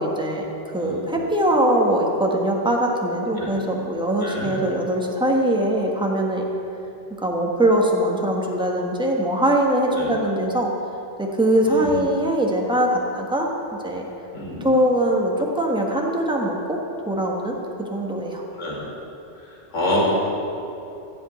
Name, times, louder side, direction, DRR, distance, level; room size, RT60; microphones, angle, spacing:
voice 1, 0.0-6.4 7.2-10.7 11.2-14.1 14.6-16.8 17.1-18.4, right 1 dB, 5° right, -1 dB, 1.3 m, -22 dB
voice 2, 0.8-1.1 3.3-3.5 4.2-4.5 9.9-10.1 11.6-12.1 14.3-14.7 18.6-18.8 19.4-20.1, left 1 dB, 85° left, -4 dB, 2.6 m, -27 dB
14.5 x 5.3 x 9.1 m, 2.8 s
omnidirectional pair, 1.2 m